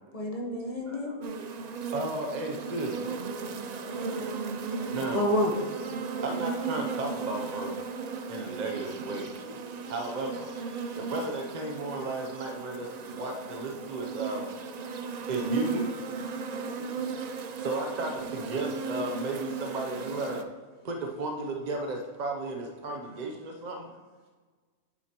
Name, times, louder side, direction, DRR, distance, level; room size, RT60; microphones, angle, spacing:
voice 1, 0.1-1.1 3.5-5.5 9.5-9.6, left 1 dB, 30° left, -1 dB, 1.0 m, -31 dB
voice 2, 0.8-1.5 1.9-3.0 4.7-5.3 6.2-7.8 8.3-9.3 9.9-10.5 10.9-14.5 15.3-15.9 17.6-20.5 20.8-23.9, right 2 dB, 45° right, 2 dB, 0.6 m, -34 dB
sound 1, 1.2-20.4, right 5 dB, 90° right, 0.3 m, -36 dB
voice 3, 10.4-11.2 16.5-17.1, equal, 75° left, -6 dB, 2.9 m, -50 dB
8.9 x 8.2 x 2.9 m, 1.4 s
omnidirectional pair, 1.3 m